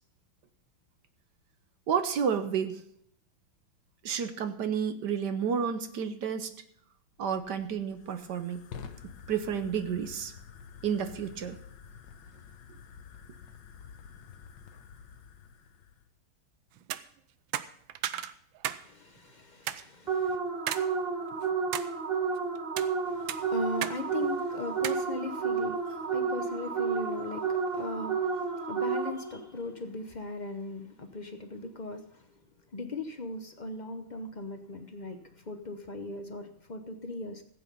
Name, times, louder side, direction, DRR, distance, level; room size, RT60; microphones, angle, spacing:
voice 1, 1.9-2.8 4.0-6.5 7.2-8.6 9.0-10.3 10.8-11.6, right 7 dB, 60° right, 10 dB, 1.4 m, -31 dB
Fire, 7.1-16.1, left 7 dB, 65° left, 1.6 m, -49 dB
sound 1, 16.8-17.0 17.5-18.9 19.2-19.3 19.7-19.8 20.7-20.9 21.3-21.9 22.6-22.9 23.3-24.0 24.2-24.4 24.8-25.0, right 12 dB, 80° right, 1.4 m, -34 dB
voice 2, 18.8-20.4 23.0-32.4 32.7-37.4, left 2 dB, 45° left, 7 dB, 0.5 m, -39 dB
sound 2, 20.1-29.5, right 5 dB, 30° right, 1.4 m, -31 dB
15.5 x 8.7 x 5.4 m, 0.66 s
omnidirectional pair, 2.2 m